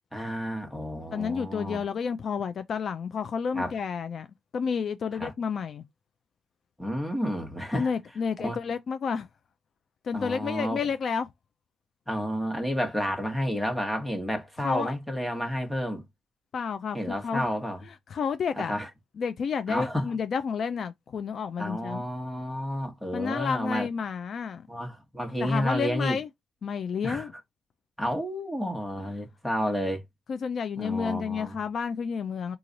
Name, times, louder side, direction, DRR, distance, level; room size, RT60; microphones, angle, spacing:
voice 1, 0.1-1.8 3.5-3.7 5.1-5.3 6.8-7.9 8.4-8.6 10.1-10.8 12.1-16.0 16.9-17.8 18.6-18.9 19.7-20.1 21.6-23.9 24.7-26.2 27.0-27.3 28.0-30.0 30.8-31.6, equal, ahead, 1.2 m, -30 dB
voice 2, 1.1-4.3 4.5-5.8 7.7-9.3 10.0-11.3 14.6-14.9 16.5-17.5 17.8-18.8 19.2-22.0 23.1-24.7 25.4-26.3 26.6-27.3 30.3-32.6, left 6 dB, 55° left, 0.4 m, -30 dB
3.0 x 2.4 x 3.9 m
cardioid pair, 90°, 0 cm